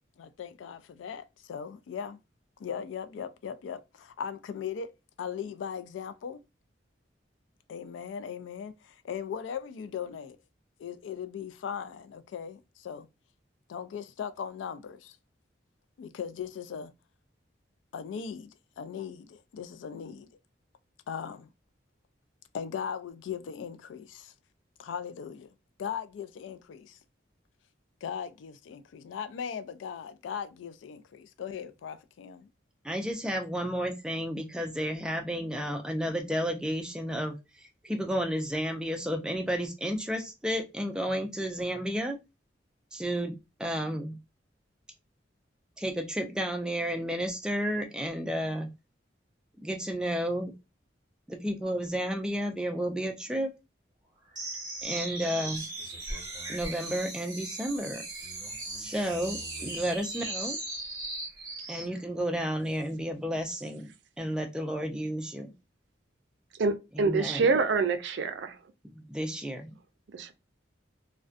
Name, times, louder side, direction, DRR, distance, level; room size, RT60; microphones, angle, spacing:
voice 1, 0.2-2.2 2.6-4.9 5.2-6.4 7.7-10.4 10.8-13.1 13.7-15.2 16.0-16.9 17.9-20.3 21.1-21.5 22.5-24.3 24.8-25.5 25.8-27.0 28.0-32.5, left 7 dB, 85° left, 0.3 m, -38 dB
voice 2, 32.8-42.2 42.9-43.3 43.6-44.2 45.8-48.7 49.6-50.5 51.3-53.5 54.8-55.7 56.5-58.0 58.8-60.6 61.7-63.9 64.2-65.5 66.9-67.4 68.9-69.7, equal, 5° right, 0.3 m, -32 dB
sound 1, 54.3-61.9, right 2 dB, 25° right, 0.9 m, -38 dB
voice 3, 66.6-68.6 70.1-70.3, right 4 dB, 70° right, 0.4 m, -26 dB
2.4 x 2.2 x 2.4 m
head